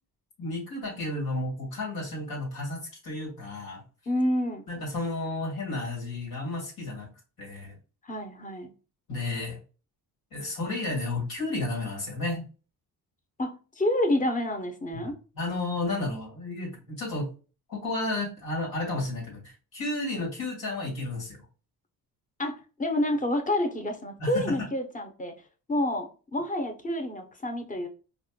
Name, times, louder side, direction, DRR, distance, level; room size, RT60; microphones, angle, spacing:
voice 1, 0.4-3.8 4.7-7.1 7.4-7.7 9.1-9.6 10.3-12.5 14.9-15.1 15.4-17.3 17.7-21.4 24.2-24.5, left 2 dB, 65° left, -3 dB, 1.8 m, -32 dB
voice 2, 4.1-4.6 8.0-8.7 13.4-15.2 22.4-25.3 25.7-27.9, left 1 dB, 20° left, 5 dB, 0.8 m, -28 dB
4.3 x 2.5 x 2.2 m, 0.35 s
cardioid pair, 90°, 38 cm